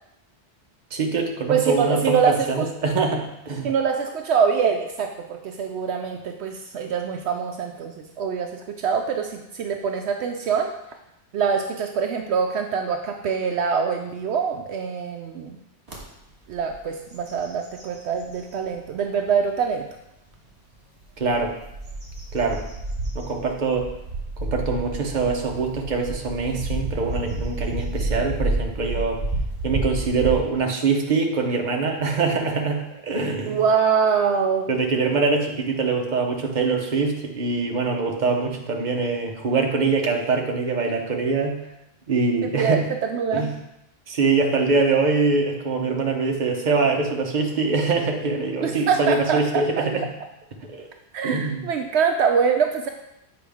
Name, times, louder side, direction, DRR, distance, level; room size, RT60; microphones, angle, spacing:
voice 1, 0.9-3.7 21.2-21.6 22.3-22.6 23.1-23.9 24.4-29.2 29.6-33.6 34.7-41.5 42.1-42.8 43.3-43.5 44.1-50.1 50.7-50.9 51.2-51.7, right 4 dB, 45° right, 2 dB, 1.0 m, -23 dB
voice 2, 1.5-2.7 3.6-10.7 11.3-15.6 16.5-19.9 33.5-34.7 42.4-43.5 48.6-49.9 51.1-52.9, right 6 dB, 75° right, 4 dB, 0.8 m, -24 dB
sound 1, 15.9-16.0 16.5-16.8 17.1-18.6 19.2-19.3 21.0-30.4, right 2 dB, 60° right, 1.9 m, -30 dB
8.0 x 5.0 x 3.5 m, 0.85 s
omnidirectional pair, 1.2 m